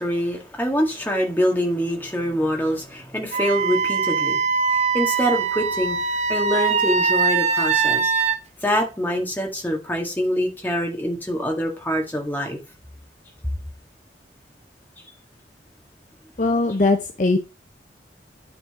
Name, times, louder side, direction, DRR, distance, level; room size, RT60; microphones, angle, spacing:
voice 1, 0.0-4.4 4.7-6.0 6.3-8.1 8.6-12.6, equal, 10° left, 1.8 m, -24 dB
Wind instrument woodwind instrument, 3.3-8.4, right 5 dB, 40° right, 0.5 m, -22 dB
voice 2, 16.4-17.4, left 2 dB, 45° left, 0.6 m, -20 dB
9.8 x 3.8 x 4.9 m
head